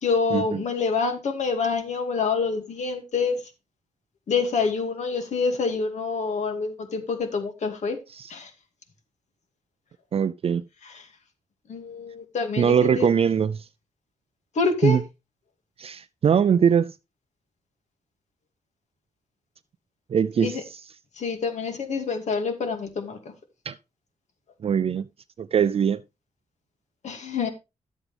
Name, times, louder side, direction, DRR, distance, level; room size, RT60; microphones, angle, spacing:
voice 1, 0.0-3.4 4.3-8.0 8.3-8.5 10.8-11.1 11.7-13.1 14.5-15.0 20.4-20.6 21.2-23.2 27.0-27.5, left 4 dB, 75° left, 2.3 m, -26 dB
voice 2, 10.1-10.6 12.6-13.6 14.8-15.0 15.8-16.9 20.1-20.8 23.7-23.8 24.6-25.0 25.4-26.0, right 7 dB, 55° right, 0.4 m, -22 dB
11.5 x 8.1 x 3.4 m
cardioid pair, 90°, 12 cm